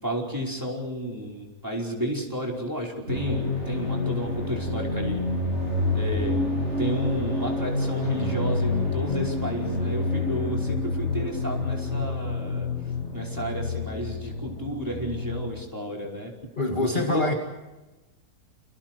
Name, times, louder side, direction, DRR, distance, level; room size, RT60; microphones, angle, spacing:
voice 1, 0.0-5.2 5.9-6.4 6.8-12.7 13.1-16.3 16.8-17.3, equal, 10° right, -1 dB, 5.0 m, -32 dB
sound 1, 3.1-15.5, left 2 dB, 45° right, 7.2 m, -28 dB
voice 2, 16.6-17.3, left 2 dB, 30° left, 1 dB, 2.3 m, -25 dB
30.0 x 25.5 x 4.6 m, 1.1 s
omnidirectional pair, 1.7 m